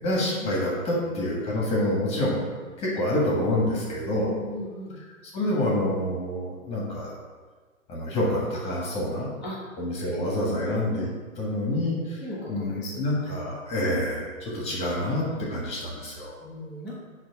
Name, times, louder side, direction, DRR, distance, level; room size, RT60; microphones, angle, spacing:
voice 1, 0.0-2.4 2.8-4.4 5.3-7.1 7.9-9.3 9.8-11.1 11.4-12.2 12.5-15.2 15.5-16.4, left 1 dB, 15° left, -4 dB, 1.6 m, -27 dB
voice 2, 4.2-4.9 9.4-9.6 10.0-10.6 12.2-13.3 14.6-14.8 16.4-17.0, equal, 5° right, -12 dB, 0.9 m, -38 dB
8.7 x 3.3 x 4.7 m, 1.4 s
hypercardioid pair, 145°, 41 cm